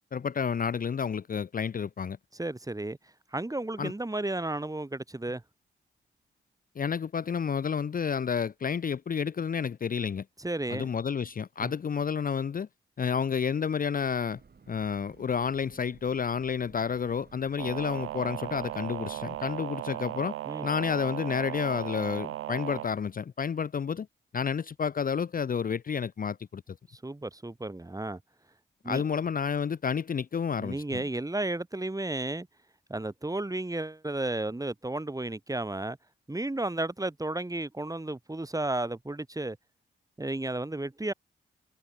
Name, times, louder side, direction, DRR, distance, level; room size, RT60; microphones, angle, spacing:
voice 1, 0.1-2.2 3.8-3.9 6.8-10.2 10.7-12.7 13.0-14.4 14.7-20.4 20.6-24.1 24.3-26.8 28.9-31.0, left 6 dB, 45° left, 0.6 m, -30 dB
voice 2, 2.4-3.0 3.3-5.4 10.4-10.9 11.6-11.7 20.5-20.7 26.9-28.2 28.8-29.0 30.6-32.5 32.9-36.0 36.3-39.6 40.2-41.1, right 2 dB, 15° right, 1.7 m, -33 dB
Breathing / Train, 14.1-19.8, right 5 dB, 50° right, 3.2 m, -57 dB
sound 1, 17.6-22.9, right 13 dB, 85° right, 0.6 m, -36 dB
supercardioid pair, 50°, 21 cm